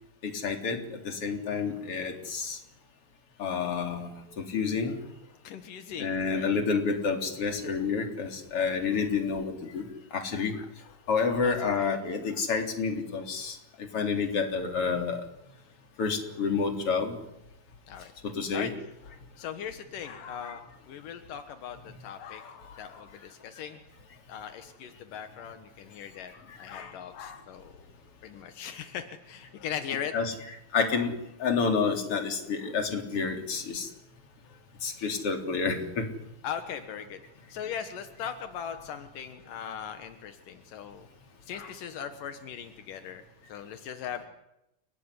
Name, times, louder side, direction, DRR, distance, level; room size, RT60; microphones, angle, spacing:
voice 1, 0.2-2.6 3.4-4.1 4.4-5.0 6.0-9.8 10.1-10.5 11.1-13.6 13.9-15.2 16.0-17.2 18.4-18.7 30.1-30.3 30.7-31.1 31.4-33.9 34.8-36.0, left 5 dB, 45° left, 4 dB, 4.3 m, -29 dB
voice 2, 4.9-6.5 10.8-11.1 11.4-11.9 14.6-14.7 17.9-18.1 18.5-23.8 24.3-27.9 28.2-30.2 30.9-31.1 32.6-32.7 34.4-34.6 35.0-35.1 36.4-37.2 37.5-41.1 41.4-43.2 43.5-44.3, left 8 dB, 80° left, 8 dB, 3.1 m, -40 dB
29.5 x 19.0 x 9.9 m, 0.87 s
omnidirectional pair, 3.7 m